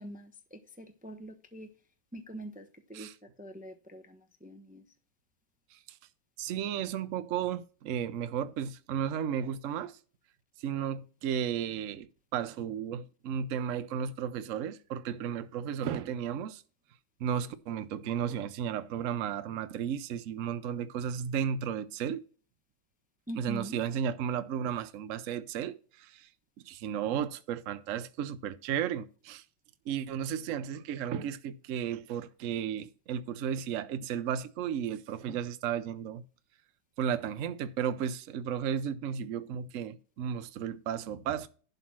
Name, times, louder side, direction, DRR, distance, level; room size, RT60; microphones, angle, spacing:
voice 1, 0.0-1.7 2.1-3.1 3.4-4.8 23.3-23.8, right 1 dB, 10° right, 0.6 m, -44 dB
voice 2, 6.4-9.9 10.6-16.6 17.2-22.2 23.3-26.3 26.7-29.4 29.9-36.2 37.0-41.5, right 8 dB, 60° right, 0.8 m, -34 dB
11.5 x 4.1 x 6.0 m
omnidirectional pair, 2.0 m